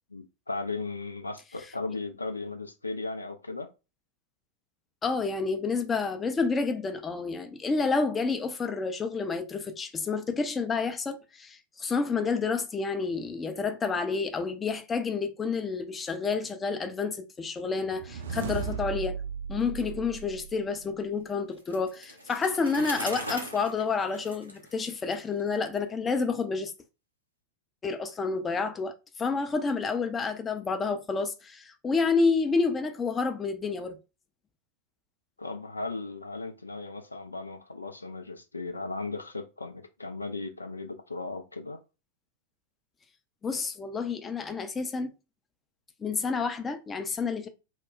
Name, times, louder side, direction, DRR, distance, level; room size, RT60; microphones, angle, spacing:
voice 1, 0.1-3.7 35.4-41.8, left 3 dB, 80° left, 0.4 m, -36 dB
voice 2, 5.0-19.2 19.5-26.7 27.8-34.0 43.4-45.1 46.0-47.5, left 4 dB, 20° left, 0.5 m, -29 dB
sound 1, 17.8-21.1, right 6 dB, 60° right, 0.4 m, -36 dB
Bicycle, 21.6-25.4, right 1 dB, 85° right, 0.7 m, -40 dB
2.2 x 2.0 x 3.7 m
figure-of-eight pair, 90°, 0 cm